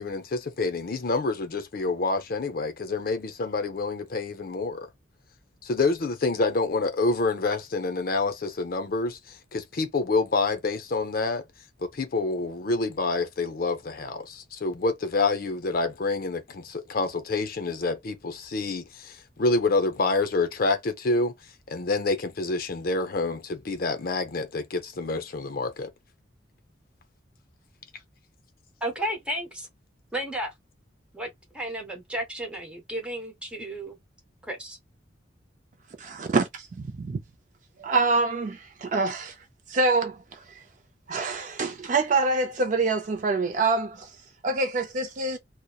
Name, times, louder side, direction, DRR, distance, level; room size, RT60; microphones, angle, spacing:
voice 1, 0.0-4.9 5.6-11.4 11.8-21.3 21.7-25.9, left 3 dB, 50° left, 0.5 m, -27 dB
voice 2, 28.8-29.7 30.1-30.5 31.1-31.3 31.5-34.0 34.4-34.8, right 1 dB, 5° right, 0.8 m, -33 dB
voice 3, 36.0-37.2 37.8-39.4 39.7-40.4 41.1-44.1 44.4-45.4, right 3 dB, 40° right, 0.4 m, -26 dB
2.8 x 2.0 x 2.2 m
head